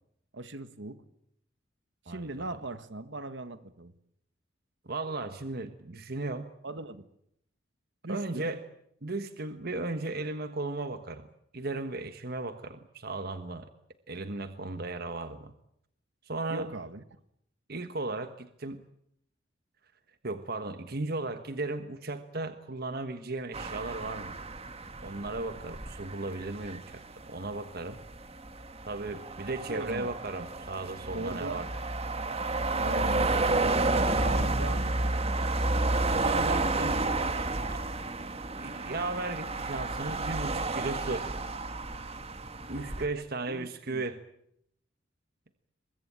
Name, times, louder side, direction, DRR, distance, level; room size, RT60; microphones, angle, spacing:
voice 1, 0.3-1.0 2.1-3.9 6.6-7.0 8.0-8.5 16.5-17.0 29.7-30.1 31.1-31.6 32.8-35.0 42.8-42.9 43.5-44.0, right 2 dB, 70° right, 12 dB, 1.6 m, -39 dB
voice 2, 4.8-6.5 8.1-8.6 9.0-11.3 11.5-13.7 14.1-15.5 16.3-16.7 17.7-18.8 20.2-24.3 25.0-28.0 28.9-31.7 36.1-37.0 37.7-37.9 38.6-41.3 42.7-44.2, right 2 dB, 55° right, 9 dB, 1.4 m, -36 dB
sound 1, 23.5-43.1, right 2 dB, 35° right, 2.0 m, -31 dB
23.0 x 22.0 x 8.7 m, 0.74 s
head